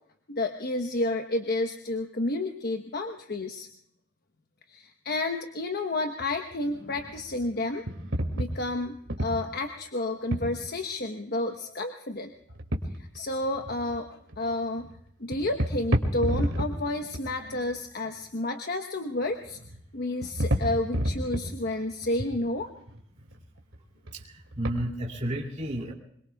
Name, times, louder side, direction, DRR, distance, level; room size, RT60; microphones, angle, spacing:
voice 1, 0.3-3.7 4.7-7.8 8.3-12.3 13.0-14.9 15.2-19.6 19.9-22.7, left 2 dB, 55° left, 5 dB, 1.1 m, -31 dB
sound 1, 6.2-6.3 6.5-7.5 7.9-9.6 10.3-10.6 12.5-13.2 13.4-14.0 14.3-14.5 14.8-15.0 15.3-16.9 17.1-17.8 19.2-19.8 20.1-22.1 22.6-23.8 24.1-24.2 24.5-24.7, equal, 80° right, 2.5 m, -31 dB
voice 2, 24.1-25.9, right 1 dB, 40° right, -2 dB, 2.9 m, -32 dB
26.5 x 22.5 x 2.4 m, 0.71 s
head